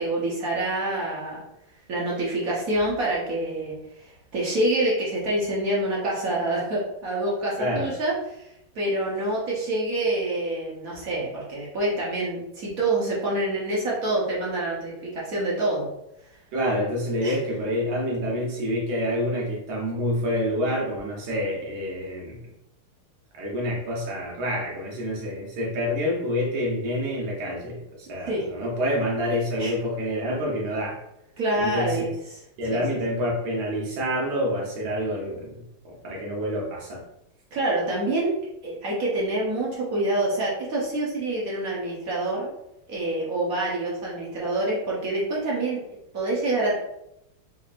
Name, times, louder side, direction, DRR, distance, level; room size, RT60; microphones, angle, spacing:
voice 1, 0.0-1.4 1.9-3.7 4.3-8.4 8.7-15.9 17.2-17.4 28.3-28.5 29.6-29.7 31.4-32.1 32.7-32.8 37.5-38.3 38.6-42.5 42.9-45.8 46.1-46.8, right 2 dB, 55° right, -5 dB, 1.0 m, -26 dB
voice 2, 7.6-7.9 16.5-22.4 23.3-31.0 31.6-32.1 32.6-35.6 36.0-37.0, equal, 75° right, -2 dB, 1.7 m, -27 dB
4.4 x 2.6 x 2.5 m, 0.82 s
omnidirectional pair, 2.3 m